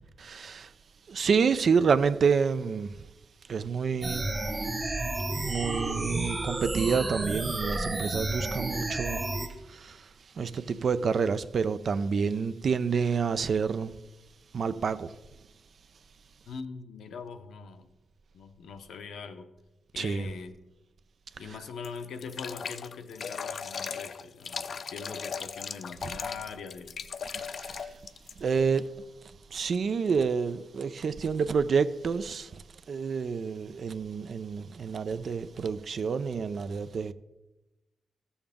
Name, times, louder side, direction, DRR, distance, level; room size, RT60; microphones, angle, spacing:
voice 1, 0.2-0.7 1.1-2.9 3.5-4.3 5.4-9.2 9.7-10.1 10.4-13.9 14.5-15.1 20.0-20.3 27.5-27.9 28.4-28.9 29.5-32.6 32.9-37.1, right 5 dB, 55° right, 0.4 m, -28 dB
sound 1, 4.0-9.5, right 2 dB, 25° right, 1.2 m, -31 dB
voice 2, 16.5-17.9 18.3-19.5 19.9-20.5 21.4-26.9, left 5 dB, 80° left, 0.8 m, -42 dB
sound 2, 21.8-28.4, left 6 dB, 55° left, 0.4 m, -37 dB
14.0 x 7.0 x 3.5 m
cardioid pair, 85°, 0 cm